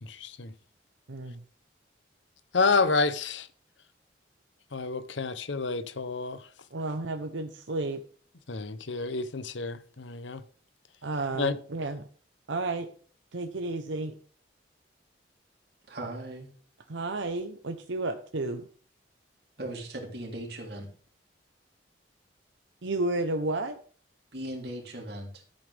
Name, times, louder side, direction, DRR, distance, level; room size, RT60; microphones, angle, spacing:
voice 1, 0.0-0.5 2.5-3.5 4.7-6.4 8.5-10.4 11.4-11.6, left 4 dB, 80° left, 0.8 m, -29 dB
voice 2, 1.1-1.4 6.7-8.0 11.0-12.0 12.5-12.9 13.3-14.1 16.9-18.7 22.8-23.8, right 2 dB, 85° right, 0.8 m, -32 dB
voice 3, 15.9-16.5 19.6-20.9 24.3-25.4, right 1 dB, 55° right, 3.1 m, -38 dB
13.0 x 8.5 x 3.5 m
head